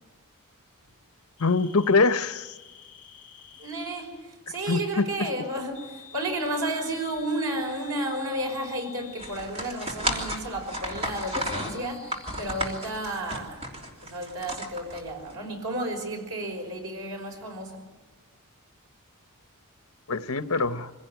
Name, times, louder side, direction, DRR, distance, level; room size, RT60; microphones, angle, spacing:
voice 1, 1.4-2.5 4.7-5.0 20.1-20.9, left 4 dB, 70° left, 0.9 m, -23 dB
sound 1, 1.4-4.1 5.7-9.5 11.0-13.2, left 8 dB, 5° left, 6.0 m, -49 dB
voice 2, 3.6-13.7 14.0-17.9, right 1 dB, 90° right, 5.7 m, -32 dB
sound 2, 9.2-15.3, equal, 30° right, 3.3 m, -33 dB
25.0 x 17.0 x 9.3 m
head